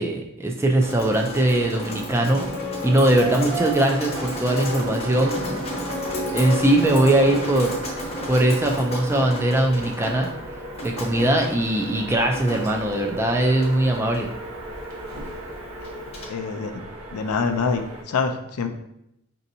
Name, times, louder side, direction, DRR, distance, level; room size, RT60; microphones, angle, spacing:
voice 1, 0.0-2.5 2.8-5.7 6.3-7.7 8.3-10.3 10.8-14.3, right 1 dB, 10° right, 1 dB, 0.3 m, -21 dB
Drip, 0.8-16.3, equal, 30° left, 0.7 m, -34 dB
sound 1, 2.3-7.4, left 1 dB, 50° right, 1.2 m, -32 dB
sound 2, 5.0-18.0, right 1 dB, 75° right, 1.0 m, -38 dB
voice 2, 16.3-16.7 17.1-18.7, left 5 dB, 85° left, 6 dB, 0.4 m, -25 dB
5.1 x 2.7 x 2.7 m, 0.81 s
head